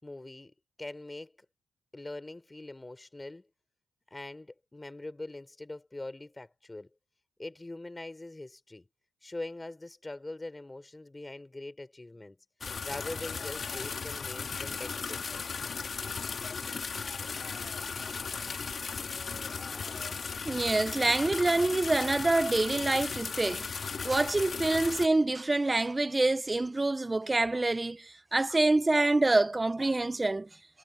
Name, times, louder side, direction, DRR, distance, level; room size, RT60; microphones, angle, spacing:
voice 1, 0.0-1.3 1.9-3.4 4.1-6.9 7.4-8.8 9.2-12.4 12.8-15.5, left 2 dB, 20° left, 4.9 m, -42 dB
sound 1, 12.6-25.1, left 5 dB, 50° left, 3.9 m, -36 dB
voice 2, 20.4-30.5, right 2 dB, 25° right, 1.5 m, -26 dB
hypercardioid pair, 40°, 0 cm